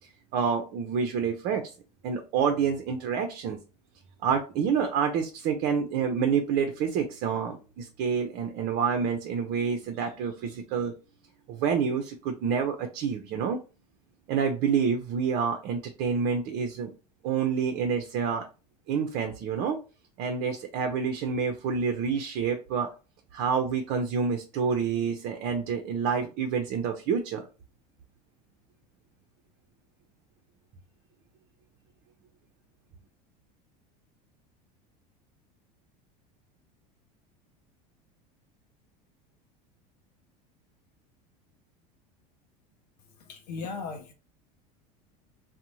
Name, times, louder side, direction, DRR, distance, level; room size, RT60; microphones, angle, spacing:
voice 1, 0.3-1.7 2.0-3.6 4.2-10.9 11.5-13.6 14.3-16.9 17.2-18.5 18.9-19.8 20.2-22.9 23.3-27.4, right 6 dB, 55° right, 0.5 m, -28 dB
voice 2, 43.3-44.1, left 4 dB, 85° left, 0.5 m, -36 dB
2.6 x 2.1 x 2.9 m
hypercardioid pair, 95°, 20 cm